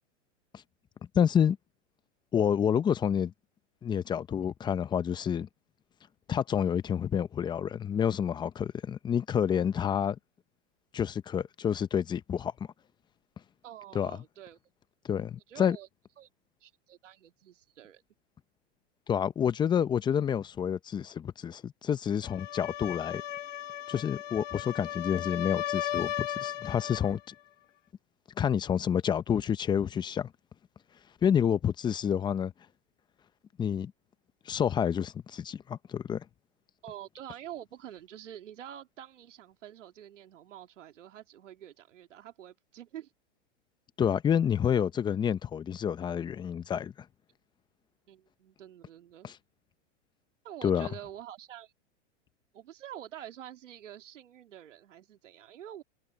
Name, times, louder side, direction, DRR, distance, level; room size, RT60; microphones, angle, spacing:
voice 1, 1.1-1.6 2.3-3.3 3.8-5.5 6.3-10.2 10.9-12.5 13.9-14.1 15.0-15.8 19.1-23.2 23.9-27.3 28.4-30.3 31.2-32.5 33.6-33.9 34.5-36.2 44.0-46.9 49.2-49.4 50.6-50.9, left 8 dB, 10° left, 0.6 m, -28 dB
voice 2, 13.6-14.6 15.5-15.9 16.2-16.3 16.6-18.0 36.8-43.1 48.1-49.3 50.4-51.7 52.5-55.8, right 11 dB, 80° right, 2.4 m, -47 dB
sound 1, 22.2-27.1, left 12 dB, 85° left, 1.6 m, -36 dB
hypercardioid pair, 135°, 36 cm